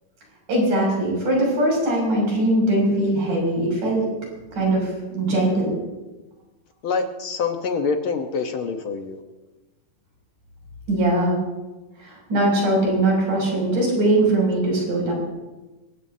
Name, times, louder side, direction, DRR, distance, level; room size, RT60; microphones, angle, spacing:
voice 1, 0.5-4.0 4.5-5.7 10.9-11.4 12.0-15.1, right 1 dB, 70° right, -2 dB, 8.1 m, -21 dB
voice 2, 6.8-9.2, left 5 dB, 65° left, 5 dB, 1.3 m, -25 dB
25.5 x 16.0 x 2.8 m, 1.1 s
omnidirectional pair, 3.8 m